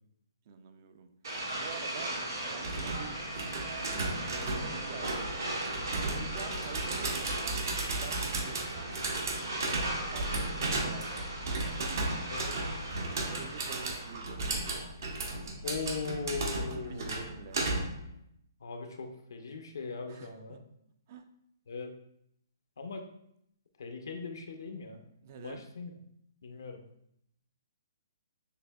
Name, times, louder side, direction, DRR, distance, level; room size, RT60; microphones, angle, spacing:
voice 1, 0.5-1.1 1.5-2.1 2.5-3.2 4.6-5.3 6.0-8.9 9.6-11.8 13.2-14.9 16.6-17.6 20.1-20.6 21.1-21.2 25.2-25.6, right 7 dB, 40° right, 8 dB, 0.3 m, -48 dB
sound 1, 1.2-14.3, right 1 dB, 85° right, 1.6 m, -38 dB
Rattling Locks, 2.6-18.1, right 2 dB, 65° right, 0.7 m, -35 dB
voice 2, 12.3-12.6 15.6-17.3 18.6-20.6 21.7-21.9 22.8-23.1 23.8-25.0 25.4-25.9 26.4-26.8, left 4 dB, 75° left, 5 dB, 0.5 m, -39 dB
6.5 x 2.7 x 2.2 m, 0.74 s
hypercardioid pair, 160°, 2 cm